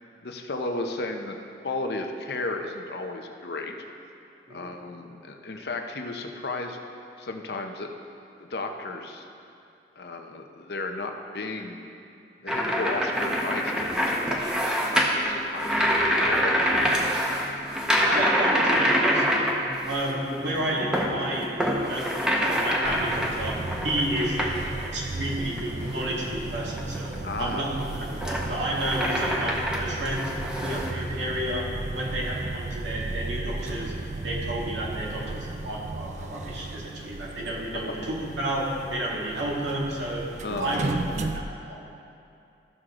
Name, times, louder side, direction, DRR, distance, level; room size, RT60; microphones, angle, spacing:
voice 1, 0.2-1.4 1.6-3.7 4.5-6.8 7.2-7.9 8.4-9.3 10.0-11.9 12.4-17.0 27.2-27.7 40.4-40.9, left 2 dB, 65° left, 4 dB, 0.7 m, -34 dB
sound 1, 12.5-20.1 20.4-24.9 25.4-26.1 26.6-30.9, equal, 5° right, 0.8 m, -26 dB
voice 2, 17.9-21.5 21.8-23.5 23.8-30.3 30.6-31.7 31.9-33.9 34.2-40.2 40.6-42.1, right 1 dB, 85° right, -5 dB, 2.1 m, -31 dB
sound 2, 22.8-41.4, right 2 dB, 40° right, 0.4 m, -35 dB
14.0 x 6.4 x 3.7 m, 2.6 s
head